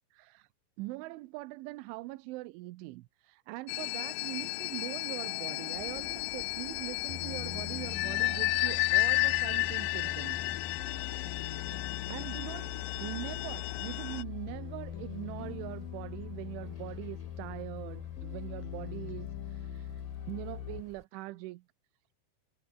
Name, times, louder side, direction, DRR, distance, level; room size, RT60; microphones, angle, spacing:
voice 1, 0.1-0.5 0.8-10.4 10.7-11.1 12.1-12.7 13.0-21.6, right 20 dB, 85° right, 3.3 m, -42 dB
sound 1, 3.7-14.2, left 21 dB, 85° left, 2.4 m, -33 dB
sound 2, 5.2-20.8, left 10 dB, 55° left, 3.0 m, -42 dB
sound 3, 5.7-21.0, left 1 dB, 5° left, 4.7 m, -55 dB
omnidirectional pair, 5.4 m